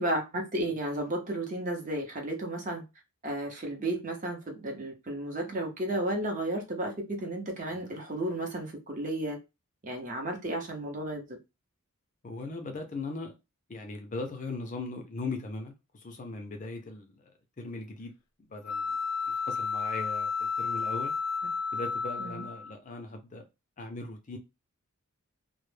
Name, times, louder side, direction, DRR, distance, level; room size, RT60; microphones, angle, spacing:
voice 1, 0.0-2.8 3.2-9.4 9.8-11.4 22.2-22.4, right 1 dB, 35° right, 0.6 m, -33 dB
voice 2, 12.2-13.3 13.7-17.3 17.6-18.1 18.5-19.0 19.4-21.1 21.7-23.4 23.8-24.4, left 3 dB, 35° left, 0.4 m, -39 dB
sound 1, 18.6-22.7, left 5 dB, 90° left, 0.4 m, -32 dB
2.1 x 2.0 x 3.1 m
head